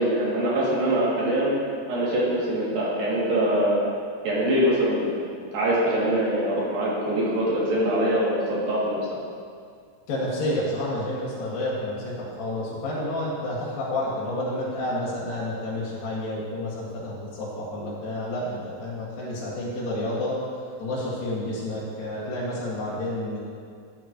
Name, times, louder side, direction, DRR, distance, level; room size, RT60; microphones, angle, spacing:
voice 1, 0.0-1.5 1.9-3.8 4.2-5.0 5.5-9.0, right 1 dB, 75° right, -7 dB, 4.2 m, -23 dB
voice 2, 10.1-20.4 20.8-23.4, left 1 dB, 70° left, -8 dB, 3.5 m, -30 dB
12.0 x 10.0 x 3.0 m, 2.2 s
omnidirectional pair, 4.1 m